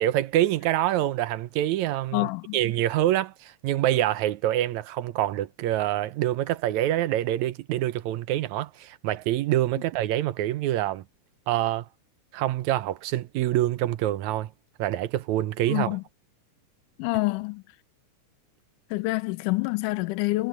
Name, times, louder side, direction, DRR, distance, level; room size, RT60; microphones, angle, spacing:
voice 1, 0.0-11.0 11.5-11.9 12.3-14.5 14.8-16.0, right 13 dB, 75° right, 1.9 m, -26 dB
voice 2, 2.1-2.6 15.7-16.0 17.0-17.6 18.9-20.5, left 22 dB, 90° left, 2.1 m, -27 dB
omnidirectional pair, 3.6 m